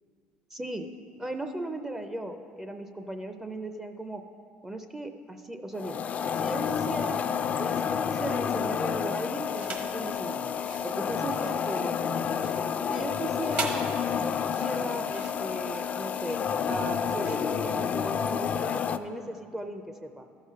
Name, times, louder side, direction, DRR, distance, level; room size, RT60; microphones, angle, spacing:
voice 1, 0.5-0.9 1.2-4.2 4.6-6.0 6.3-7.2 7.6-10.5 10.8-12.3 12.9-13.8 14.1-20.2, right 1 dB, 15° right, 7 dB, 0.5 m, -37 dB
sound 1, 5.8-19.0, left 7 dB, 40° left, 0.3 m, -30 dB
sound 2, 9.5-10.0 10.5-18.3, right 3 dB, 50° right, 1.2 m, -40 dB
13.5 x 4.9 x 5.6 m, 2.3 s
supercardioid pair, 100°, 4 cm